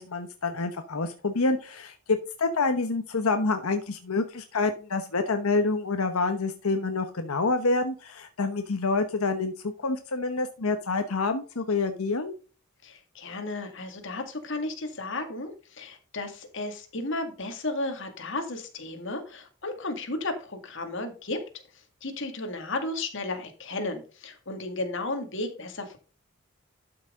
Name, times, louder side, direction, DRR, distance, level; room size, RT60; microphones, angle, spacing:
voice 1, 0.0-12.3, left 3 dB, 85° left, 7 dB, 1.0 m, -27 dB
voice 2, 12.8-21.4 22.0-26.0, left 2 dB, 60° left, 6 dB, 2.1 m, -34 dB
12.0 x 6.0 x 3.7 m, 0.36 s
head